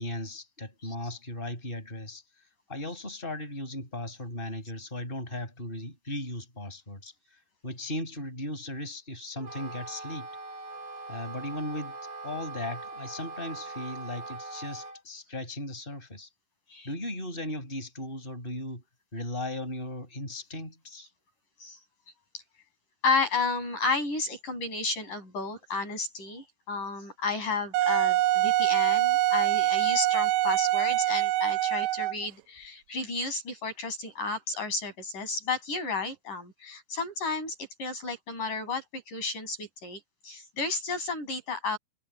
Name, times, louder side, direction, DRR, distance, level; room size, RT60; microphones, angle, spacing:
voice 1, 0.0-2.2 2.7-10.3 11.1-12.0 12.2-16.3 16.8-18.9 19.1-21.1, left 1 dB, 10° left, 7.6 m, -37 dB
Wind instrument woodwind instrument, 9.3-15.0, right 3 dB, 30° right, 4.3 m, -41 dB
voice 2, 23.0-41.8, left 4 dB, 55° left, 9.1 m, -32 dB
Wind instrument woodwind instrument 2, 27.7-32.3, right 15 dB, 85° right, 2.8 m, -24 dB
omnidirectional pair, 4.5 m